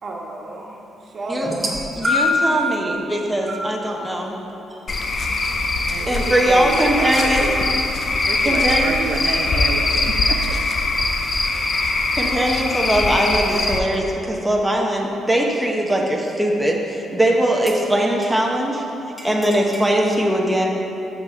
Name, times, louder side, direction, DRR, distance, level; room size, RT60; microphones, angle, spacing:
voice 1, 0.0-1.8 2.1-2.2 6.0-6.3, right 1 dB, 45° right, -1 dB, 1.3 m, -33 dB
sound 1, 1.4-2.6 3.5-3.7 4.7-4.8, left 2 dB, 25° right, 1.6 m, -21 dB
voice 2, 1.9-4.3 6.1-7.5 8.4-8.9 12.2-18.8 19.2-20.7, right 1 dB, 5° right, -1 dB, 0.9 m, -20 dB
Cricket / Frog, 4.9-13.8, left 3 dB, 40° left, 0.6 m, -22 dB
voice 3, 5.9-7.7 8.3-10.6, right 4 dB, 70° right, 2 dB, 0.5 m, -29 dB
sound 2, 16.9-17.2 17.7-18.6 19.2-20.0, equal, 10° left, 1.6 m, -40 dB
6.0 x 6.0 x 5.5 m, 2.8 s
cardioid pair, 90°, 0 cm